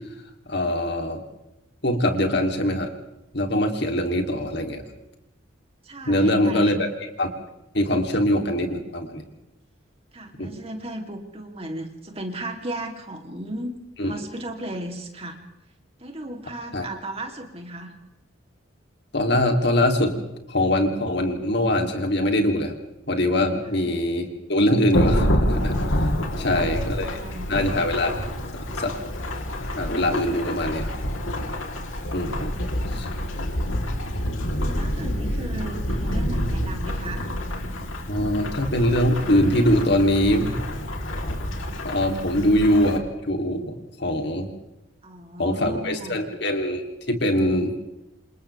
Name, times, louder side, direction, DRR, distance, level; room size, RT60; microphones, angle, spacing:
voice 1, 0.5-1.2 1.8-2.9 3.3-4.8 6.0-6.9 7.2-7.3 7.7-9.2 10.4-10.5 14.0-14.1 16.7-16.9 19.1-20.2 20.5-22.7 23.1-25.9 26.4-27.2 27.5-28.2 28.6-28.9 29.7-30.9 32.1-32.5 32.9-33.1 38.1-40.6 41.8-44.5 45.4-46.8 47.1-47.7, left 1 dB, 55° left, 4 dB, 3.2 m, -23 dB
voice 2, 5.8-6.7 10.1-13.7 14.0-15.4 16.0-17.9 23.6-23.7 26.1-27.5 32.5-33.4 34.4-37.3 45.0-46.2, right 1 dB, 30° right, 3 dB, 3.1 m, -36 dB
Thunderstorm / Rain, 24.9-43.0, equal, 80° left, 3.5 m, -27 dB
28.5 x 27.5 x 3.5 m, 0.91 s
head